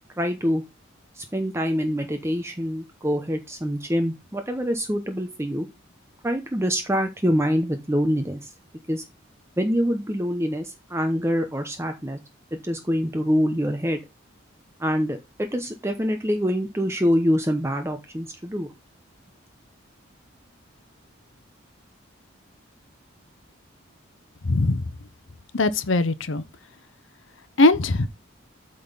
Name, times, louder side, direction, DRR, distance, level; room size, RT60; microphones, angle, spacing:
voice 1, 0.2-0.6 1.2-5.7 6.2-8.5 8.9-9.0 9.6-12.2 12.6-14.0 14.8-18.7, equal, 15° right, 0.8 m, -25 dB
voice 2, 24.4-24.8 25.5-26.4 27.6-28.1, left 2 dB, 70° left, 0.7 m, -20 dB
8.5 x 3.9 x 5.5 m
head